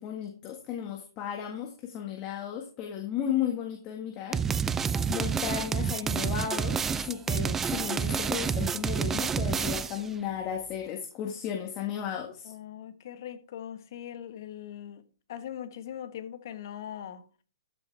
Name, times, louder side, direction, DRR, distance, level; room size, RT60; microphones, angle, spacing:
voice 1, 0.0-4.7 5.1-12.5, left 9 dB, 30° left, 1.7 m, -34 dB
sound 1, 4.3-10.1, right 6 dB, 15° right, 0.4 m, -29 dB
voice 2, 12.4-17.3, left 10 dB, 60° left, 1.5 m, -41 dB
13.5 x 7.4 x 3.5 m
hypercardioid pair, 140°, 2 cm